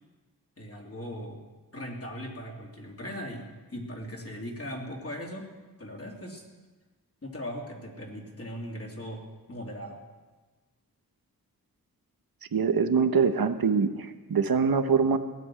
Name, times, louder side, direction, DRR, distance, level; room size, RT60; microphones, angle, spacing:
voice 1, 0.6-1.4 1.7-5.5 5.8-6.4 7.2-9.2 9.5-10.0, equal, 40° left, 0 dB, 2.8 m, -39 dB
voice 2, 12.5-15.2, right 5 dB, 70° right, 9 dB, 1.0 m, -24 dB
17.0 x 7.9 x 9.8 m, 1.3 s
wide cardioid pair, 95°, 37 cm